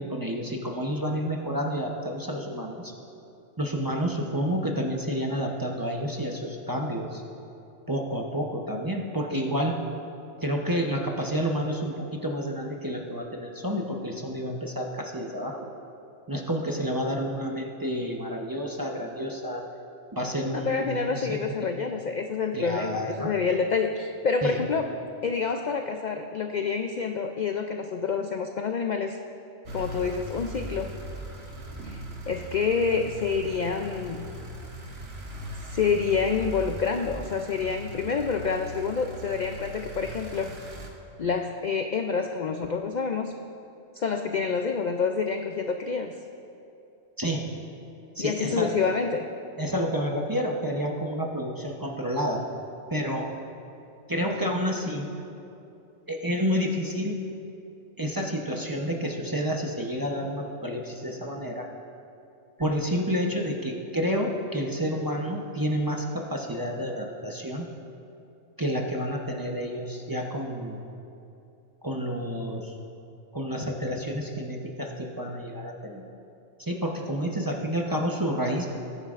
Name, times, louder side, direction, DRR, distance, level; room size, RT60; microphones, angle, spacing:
voice 1, 0.0-2.9 3.6-7.2 7.9-9.7 10.4-15.7 16.3-19.7 20.1-21.7 22.5-23.3 24.4-24.6 47.2-47.5 48.2-48.7 49.6-52.4 52.9-53.3 54.1-55.1 56.1-57.2 58.0-61.7 62.6-67.7 68.6-70.8 71.8-72.7 73.3-76.0 76.6-78.7, equal, 20° right, 0 dB, 0.7 m, -29 dB
voice 2, 20.5-24.9 25.2-29.2 29.7-30.9 31.8-34.3 35.6-40.6 41.2-43.3 44.0-46.1 48.2-49.3, left 5 dB, 60° left, 5 dB, 0.4 m, -28 dB
sound 1, 29.7-40.9, right 1 dB, 55° right, 1.5 m, -39 dB
20.5 x 9.7 x 2.5 m, 2.7 s
omnidirectional pair, 1.3 m